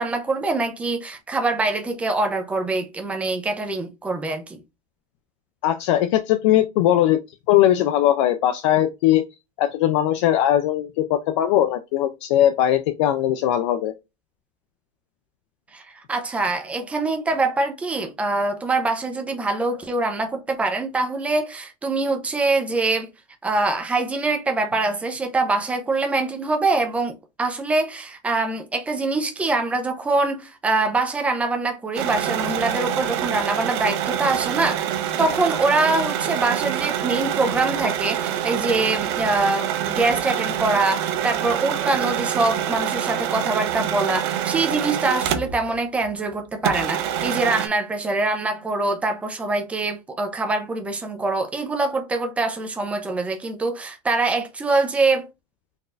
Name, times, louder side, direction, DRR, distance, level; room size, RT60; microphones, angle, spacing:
voice 1, 0.0-4.6 15.7-23.1 23.4-34.8 35.2-55.3, right 3 dB, 5° right, 0.6 m, -24 dB
voice 2, 5.6-7.2 7.5-9.2 9.6-13.9, left 12 dB, 50° left, 0.5 m, -19 dB
sound 1, 32.0-45.7 46.0-46.1 46.6-47.7, right 10 dB, 50° right, 0.7 m, -26 dB
4.1 x 2.6 x 3.3 m
supercardioid pair, 160°, 19 cm